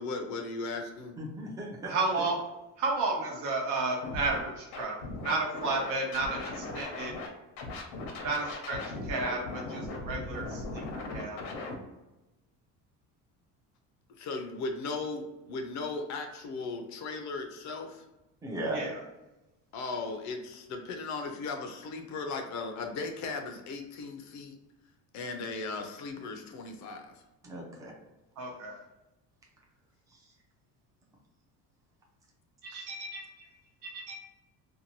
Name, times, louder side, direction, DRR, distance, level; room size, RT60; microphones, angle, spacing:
voice 1, 0.0-1.1 14.2-18.1 19.7-24.6 25.1-27.2, left 3 dB, 55° left, 4 dB, 0.5 m, -37 dB
voice 2, 1.2-1.9 18.4-18.8 27.4-27.9 30.1-30.3 32.8-33.0, right 1 dB, 10° right, -2 dB, 0.4 m, -37 dB
voice 3, 1.9-2.4 2.8-7.1 8.2-11.4 18.7-19.0 28.4-28.8 32.6-33.5 33.8-34.2, right 3 dB, 65° right, 0 dB, 0.9 m, -33 dB
Scratching (performance technique), 4.0-4.4 4.7-7.3 7.6-11.7, left 3 dB, 90° left, 0.8 m, -38 dB
2.6 x 2.2 x 2.9 m, 1.0 s
cardioid pair, 155°, 35 cm